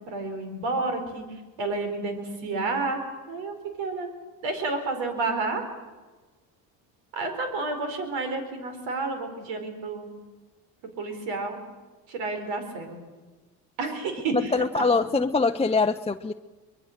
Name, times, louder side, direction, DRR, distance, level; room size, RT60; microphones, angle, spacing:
voice 1, 0.0-3.0 3.3-4.1 4.4-5.6 7.1-10.1 11.0-11.6 12.1-13.0 13.8-14.9, right 3 dB, 70° right, 7 dB, 4.7 m, -30 dB
voice 2, 14.3-16.3, left 4 dB, 15° left, 6 dB, 0.6 m, -23 dB
24.0 x 22.0 x 6.7 m, 1.3 s
supercardioid pair, 75°, 46 cm